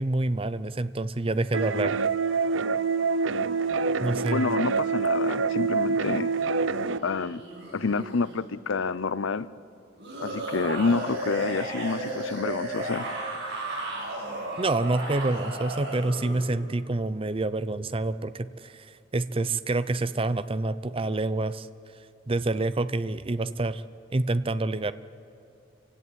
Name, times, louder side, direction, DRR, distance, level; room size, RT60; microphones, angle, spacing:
voice 1, 0.0-2.1 4.0-4.5 14.6-21.7 22.3-23.8 24.1-24.9, right 2 dB, 30° right, 14 dB, 0.6 m, -27 dB
sound 1, 1.5-7.0, right 4 dB, 85° right, 0.7 m, -26 dB
voice 2, 4.3-6.3 7.0-7.4 7.7-9.5 10.2-13.1, left 4 dB, 90° left, 17 dB, 0.7 m, -28 dB
sound 2, 6.7-8.4 10.0-16.5, right 1 dB, 60° right, 6.8 m, -34 dB
26.5 x 16.5 x 9.3 m, 2.7 s
head